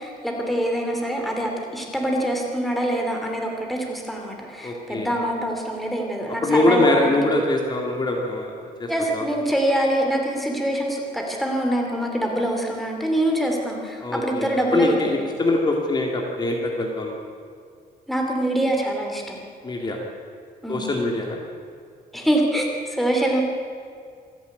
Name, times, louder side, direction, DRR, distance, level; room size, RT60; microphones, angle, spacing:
voice 1, 0.0-7.2 8.9-15.2 18.1-19.4 20.6-20.9 22.1-23.4, right 1 dB, ahead, 1 dB, 2.7 m, -24 dB
voice 2, 4.6-5.1 6.4-8.5 8.8-9.3 14.0-17.2 19.6-20.0 20.7-21.4, left 2 dB, 25° left, 0 dB, 2.2 m, -23 dB
26.0 x 11.0 x 9.3 m, 2.2 s
wide cardioid pair, 180°, 16 cm